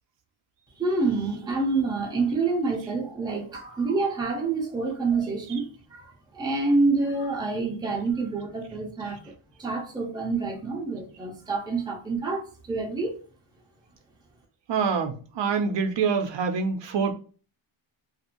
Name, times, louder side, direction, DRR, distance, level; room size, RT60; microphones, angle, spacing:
voice 1, 0.8-13.2, right 3 dB, 10° right, 0.5 m, -27 dB
voice 2, 14.7-17.1, right 5 dB, 60° right, 0.5 m, -25 dB
2.5 x 2.4 x 2.8 m
wide cardioid pair, 145°, 49 cm